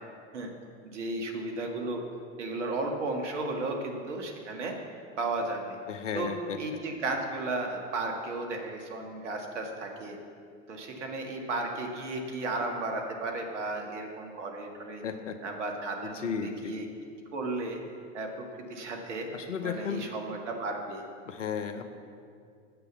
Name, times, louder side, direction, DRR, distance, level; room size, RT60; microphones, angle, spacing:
voice 1, 0.8-2.0 2.4-4.8 5.2-5.8 6.2-6.3 6.6-10.2 10.7-15.0 15.4-16.9 17.3-17.8 18.1-19.3 19.6-21.0, right 2 dB, 70° right, 2 dB, 1.9 m, -34 dB
voice 2, 5.9-6.8 15.0-15.4 16.0-16.8 19.3-20.0 21.2-21.9, left 7 dB, 75° left, 9 dB, 1.0 m, -34 dB
9.6 x 7.8 x 7.3 m, 2.3 s
figure-of-eight pair, 80°, 37 cm